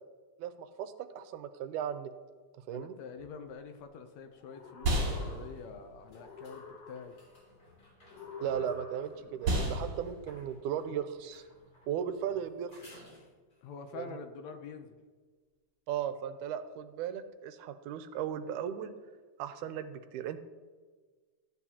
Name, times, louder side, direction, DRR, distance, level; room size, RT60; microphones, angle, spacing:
voice 1, 0.4-2.1 2.7-3.0 8.4-11.4 11.9-13.0 13.9-14.1 15.9-18.9 19.4-20.4, right 9 dB, 85° right, 11 dB, 2.1 m, -36 dB
voice 2, 2.7-7.2 13.6-15.0, left 5 dB, 75° left, 6 dB, 1.8 m, -46 dB
sound 1, 3.2-3.3 4.6-13.7 17.1-17.2, left 1 dB, 30° left, 3.3 m, -58 dB
sound 2, 3.5-13.1, right 1 dB, 45° right, 2.9 m, -37 dB
sound 3, 4.3-5.8 6.1-7.4 8.1-9.4, left 4 dB, 90° left, 3.1 m, -47 dB
13.5 x 9.6 x 2.8 m, 1.4 s
omnidirectional pair, 3.5 m